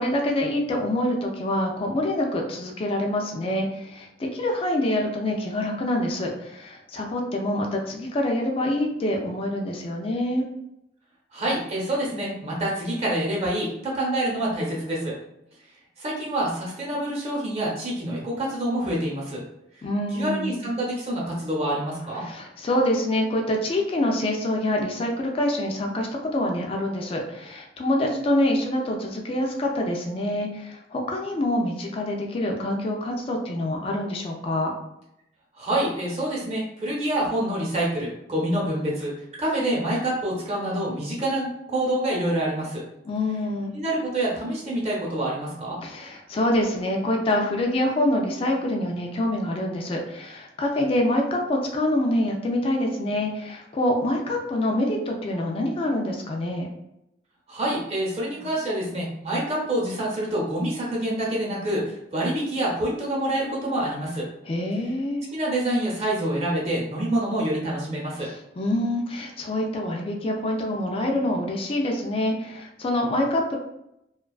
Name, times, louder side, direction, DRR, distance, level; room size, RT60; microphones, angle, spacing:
voice 1, 0.0-10.4 19.8-20.6 22.2-34.7 43.1-43.7 45.8-56.7 64.5-65.2 68.2-73.6, left 1 dB, 35° left, 1 dB, 0.4 m, -26 dB
voice 2, 11.3-15.2 16.0-19.4 19.7-19.8 20.1-22.2 35.5-39.1 39.4-42.8 43.7-45.8 57.5-64.3 65.3-68.3, right 1 dB, 35° right, -4 dB, 0.8 m, -27 dB
2.5 x 2.2 x 2.3 m, 0.83 s
head